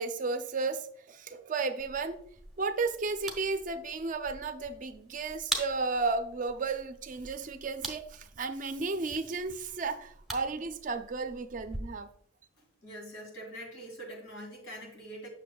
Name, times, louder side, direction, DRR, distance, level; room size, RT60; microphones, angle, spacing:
voice 1, 0.0-2.2 2.6-12.1, right 3 dB, 40° right, 9 dB, 0.4 m, -33 dB
sound 1, 1.8-11.8, right 2 dB, ahead, 0.8 m, -43 dB
voice 2, 12.6-15.3, right 1 dB, 80° left, 1 dB, 2.3 m, -44 dB
7.6 x 6.2 x 2.3 m, 0.62 s
head